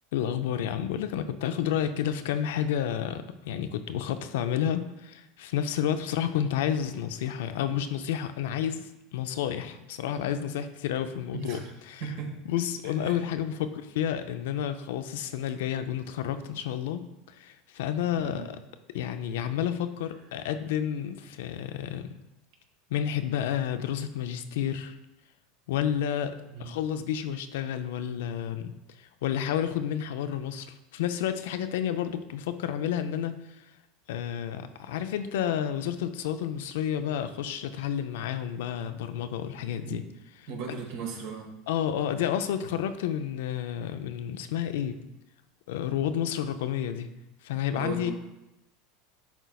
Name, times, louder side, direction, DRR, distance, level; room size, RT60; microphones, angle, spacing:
voice 1, 0.1-11.6 11.9-12.0 12.5-18.5 18.9-22.1 22.9-25.0 25.7-26.3 26.6-28.7 29.0-33.6 34.1-40.0 41.7-45.0 45.7-47.1 47.4-48.1, left 9 dB, 75° left, 9 dB, 0.4 m, -30 dB
voice 2, 12.0-12.4 12.8-13.2 18.2-18.5 26.5-26.7 39.8-40.1 40.5-41.5 47.7-48.1, right 5 dB, 70° right, 0 dB, 1.5 m, -37 dB
10.0 x 3.9 x 2.3 m, 0.92 s
hypercardioid pair, 100°, 0 cm